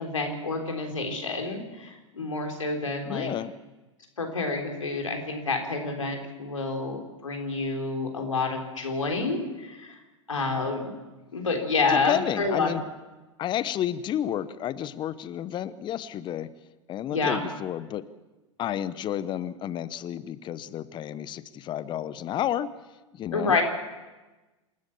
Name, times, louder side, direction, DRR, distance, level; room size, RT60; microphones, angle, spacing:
voice 1, 0.0-3.3 4.2-10.0 10.3-10.9 11.3-12.7 17.1-17.4 23.3-23.6, left 3 dB, 80° left, 3 dB, 3.9 m, -28 dB
voice 2, 3.0-3.5 11.9-12.8 13.4-16.5 16.9-18.1 18.6-22.7 23.1-23.6, left 11 dB, 30° left, 17 dB, 0.9 m, -31 dB
27.5 x 13.0 x 7.3 m, 1.1 s
figure-of-eight pair, 90°, 17 cm